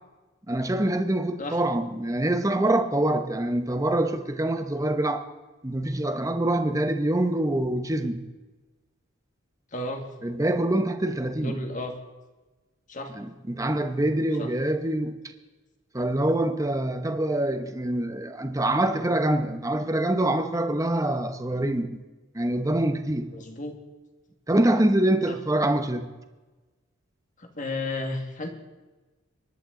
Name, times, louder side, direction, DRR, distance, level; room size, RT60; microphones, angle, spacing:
voice 1, 0.5-5.3 5.6-8.2 10.2-11.5 13.2-15.2 15.9-22.0 22.3-23.3 24.5-26.1, right 1 dB, 15° right, 1.0 m, -25 dB
voice 2, 9.7-10.0 11.4-11.9 12.9-13.1 14.4-14.5 23.3-23.7 25.3-25.4 27.4-28.5, left 2 dB, 40° left, 1.9 m, -33 dB
23.5 x 11.0 x 3.9 m
head